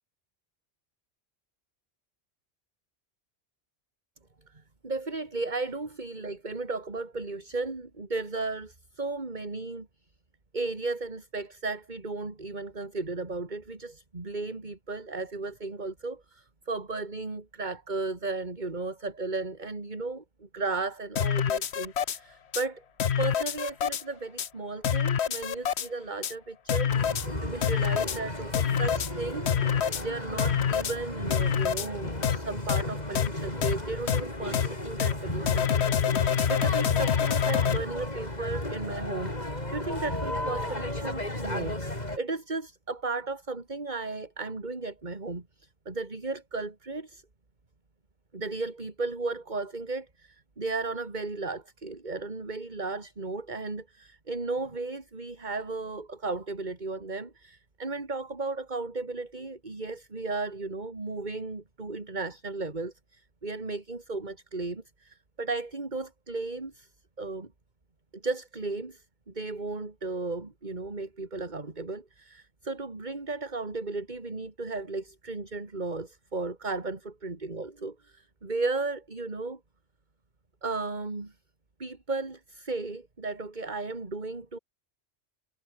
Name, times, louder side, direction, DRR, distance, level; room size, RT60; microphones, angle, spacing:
voice 1, 4.5-9.9 10.5-22.8 23.2-27.2 27.4-39.4 39.7-41.8 42.1-47.2 48.3-66.9 67.2-67.5 68.1-79.6 80.6-81.3 81.8-84.6, right 3 dB, 40° right, 2.7 m, -35 dB
sound 1, 21.2-22.2 22.5-22.6 23.0-24.0 24.4-24.5 24.8-25.9 26.2-26.3 26.7-27.3 27.6-28.2 28.5-29.1 29.5-30.0 30.4-30.9 31.3-31.9 32.2-32.4 32.7-32.8 33.2-33.3 33.6-33.7 34.1-34.2 34.5-34.7 35.0-35.1 35.5-37.8, left 8 dB, 70° left, 1.2 m, -26 dB
sound 2, 26.9-42.2, left 1 dB, 40° left, 5.3 m, -34 dB
omnidirectional pair, 1.1 m